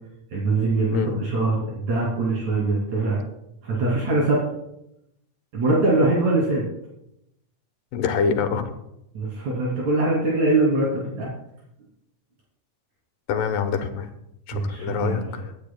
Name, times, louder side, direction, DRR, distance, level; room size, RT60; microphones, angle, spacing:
voice 1, 0.3-3.2 3.6-4.4 5.5-6.6 9.1-11.3 14.5-15.3, right 2 dB, 60° right, -5 dB, 4.0 m, -22 dB
voice 2, 7.9-8.7 13.3-14.1 14.5-15.4, left 6 dB, 85° left, 7 dB, 2.7 m, -25 dB
24.5 x 10.0 x 2.2 m, 0.83 s
omnidirectional pair, 3.7 m